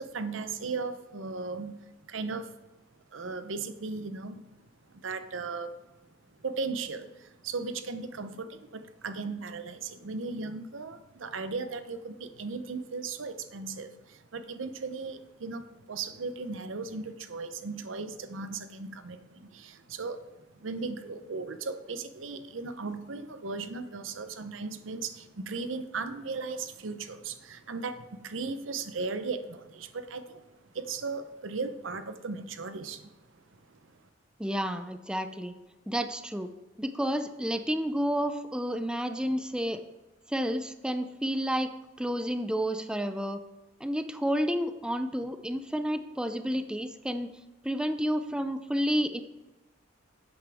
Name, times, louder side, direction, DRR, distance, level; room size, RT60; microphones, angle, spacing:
voice 1, 0.0-2.6 3.1-4.4 4.9-5.8 6.4-30.4 30.7-33.1 33.7-33.9, right 4 dB, 90° right, 11 dB, 0.7 m, -37 dB
voice 2, 34.4-35.5 35.9-36.5 36.8-39.8 40.3-41.7 42.0-43.4 43.8-47.3 47.6-49.2, equal, 5° right, 9 dB, 0.4 m, -30 dB
11.0 x 8.0 x 3.5 m, 1.1 s
head